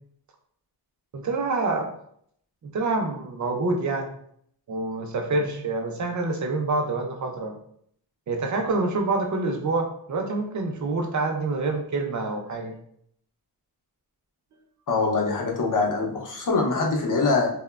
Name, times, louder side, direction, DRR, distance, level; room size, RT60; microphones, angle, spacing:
voice 1, 1.1-1.9 2.6-4.1 4.7-7.6 8.3-12.8, right 3 dB, 50° right, 3 dB, 0.4 m, -27 dB
voice 2, 14.9-17.5, left 3 dB, 50° left, 0 dB, 0.6 m, -23 dB
2.8 x 2.1 x 2.2 m, 0.66 s
wide cardioid pair, 155°, 40 cm